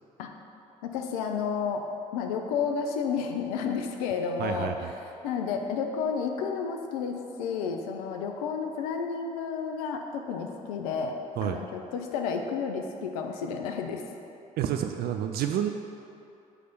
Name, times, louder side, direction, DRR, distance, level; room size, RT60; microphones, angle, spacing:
voice 1, 0.8-1.8 2.1-4.7 5.2-11.2 11.4-14.0, left 6 dB, 80° left, 4 dB, 0.6 m, -31 dB
voice 2, 4.4-4.9 11.4-11.6 14.6-15.7, right 10 dB, 55° right, 6 dB, 0.4 m, -29 dB
8.5 x 3.3 x 5.3 m, 2.6 s
hypercardioid pair, 45°, 19 cm